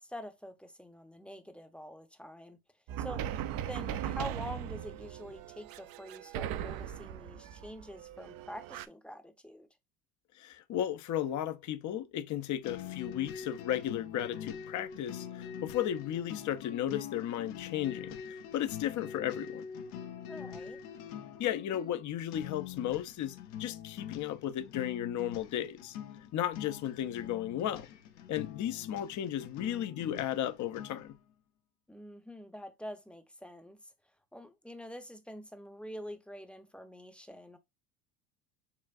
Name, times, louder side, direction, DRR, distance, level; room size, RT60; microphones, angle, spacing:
voice 1, 0.0-2.6 3.0-3.3 3.6-9.7 20.3-20.8 31.9-33.9 34.3-37.6, equal, 5° left, 0.8 m, -46 dB
sound 1, 2.9-8.9, right 10 dB, 55° right, 0.6 m, -39 dB
voice 2, 10.4-19.7 21.4-26.0 26.3-27.9 28.3-31.2, left 11 dB, 40° left, 0.7 m, -34 dB
sound 2, 12.6-31.2, left 8 dB, 70° left, 1.0 m, -44 dB
6.9 x 2.4 x 2.5 m
hypercardioid pair, 75°, 43 cm